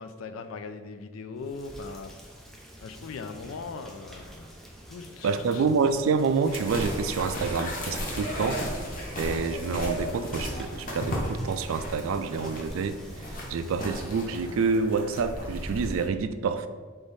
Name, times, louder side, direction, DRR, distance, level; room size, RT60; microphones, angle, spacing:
voice 1, 0.0-2.1 2.8-4.5 4.9-5.7, left 4 dB, 90° left, 9 dB, 0.4 m, -39 dB
Rain, 1.3-14.5, equal, ahead, 0.4 m, -49 dB
voice 2, 5.2-8.6 9.2-16.7, right 5 dB, 85° right, 11 dB, 0.3 m, -28 dB
sound 1, 5.9-11.7 12.2-12.7, right 2 dB, 30° right, 0.8 m, -50 dB
sound 2, 6.5-16.1, equal, 40° left, 0.8 m, -35 dB
3.5 x 3.4 x 4.1 m, 1.5 s
head